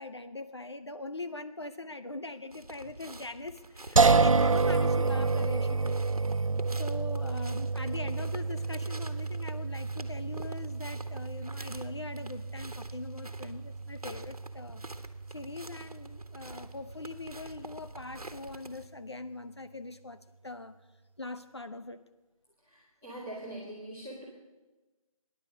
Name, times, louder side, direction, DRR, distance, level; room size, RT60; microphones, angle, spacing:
voice 1, 0.0-6.0 6.7-14.8 15.3-20.8 21.2-22.0, left 2 dB, 50° left, 10 dB, 0.7 m, -42 dB
sound 1, 2.5-18.9, right 2 dB, 85° right, 1.4 m, -47 dB
sound 2, 4.0-17.0, right 4 dB, 65° right, 0.5 m, -30 dB
voice 2, 22.6-24.2, right 1 dB, 5° left, -9 dB, 0.9 m, -43 dB
22.5 x 10.5 x 5.3 m, 1.2 s
figure-of-eight pair, 175°, 18 cm